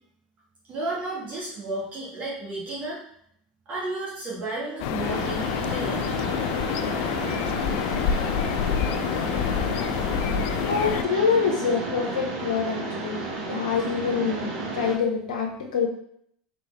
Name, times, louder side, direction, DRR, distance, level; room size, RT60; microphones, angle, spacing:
voice 1, 0.7-3.0 3.6-6.1, right 2 dB, 40° right, -6 dB, 1.5 m, -32 dB
sound 1, 4.8-11.0, left 9 dB, 60° left, 0.3 m, -27 dB
Mechanisms, 5.0-14.9, right 3 dB, 60° right, 1.4 m, -32 dB
voice 2, 10.6-13.2 13.5-15.9, left 6 dB, 80° left, 2 dB, 0.8 m, -25 dB
4.2 x 3.6 x 3.3 m, 0.67 s
hypercardioid pair, 95°, 4 cm